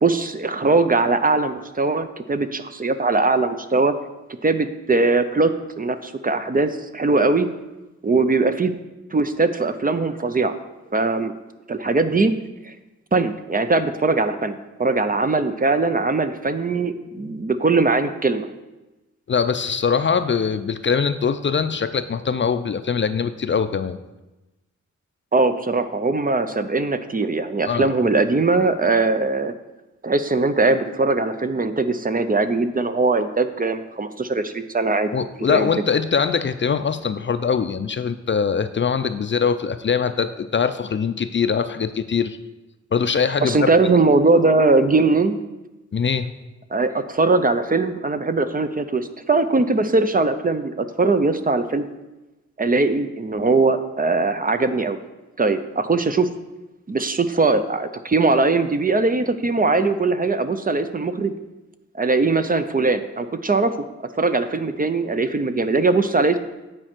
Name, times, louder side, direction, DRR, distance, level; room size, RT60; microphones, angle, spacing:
voice 1, 0.0-3.9 4.4-7.5 8.0-8.7 9.1-10.6 10.9-11.3 11.7-12.3 12.6-12.7 13.1-18.5 25.3-29.5 30.0-35.1 35.5-35.7 43.4-45.4 46.7-51.9 52.6-55.0 55.4-56.3 56.9-61.3 61.9-63.9 64.2-66.4, right 3 dB, 30° right, 10 dB, 0.5 m, -20 dB
voice 2, 19.3-24.0 27.7-27.9 35.1-42.4 42.9-43.7 45.9-46.3, left 6 dB, 40° left, 11 dB, 0.4 m, -22 dB
8.9 x 4.4 x 5.9 m, 1.1 s
wide cardioid pair, 105°, 29 cm